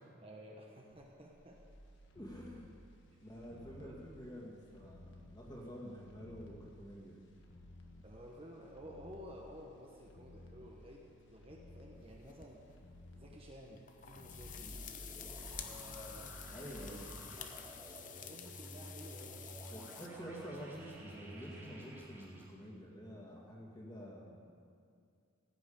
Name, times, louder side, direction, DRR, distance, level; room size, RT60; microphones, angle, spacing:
voice 1, 0.2-1.6 3.1-3.3 3.8-4.0 8.0-11.0 11.3-12.6 13.1-14.8 15.5-16.3 16.8-17.0 17.3-17.6 18.1-19.5, equal, 25° right, -1 dB, 1.0 m, -53 dB
sound 1, 0.9-17.0 17.3-17.4, left 1 dB, 55° left, 1.4 m, -58 dB
voice 2, 2.1-2.7 3.2-7.2 16.5-17.2 19.7-24.4, equal, 20° left, -3 dB, 2.2 m, -49 dB
sound 2, 11.9-12.7 13.8-20.1, left 9 dB, 35° left, 0.7 m, -50 dB
sound 3, 14.3-22.4, right 1 dB, 10° right, 2.3 m, -51 dB
16.0 x 6.1 x 8.9 m, 2.3 s
head